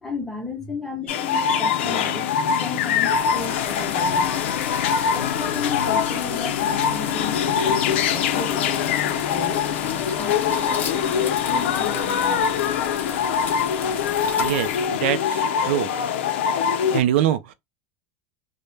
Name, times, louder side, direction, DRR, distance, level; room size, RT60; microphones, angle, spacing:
voice 1, 0.0-2.3 2.6-4.3 5.1-9.7 10.2-12.4, left 3 dB, 5° left, 0.9 m, -34 dB
sound 1, 1.1-17.0, left 7 dB, 90° left, 0.4 m, -23 dB
sound 2, 3.1-15.6, left 6 dB, 30° left, 0.6 m, -36 dB
voice 2, 14.4-15.9 16.9-17.5, right 11 dB, 80° right, 0.4 m, -23 dB
2.1 x 2.0 x 3.1 m
supercardioid pair, 140°, 6 cm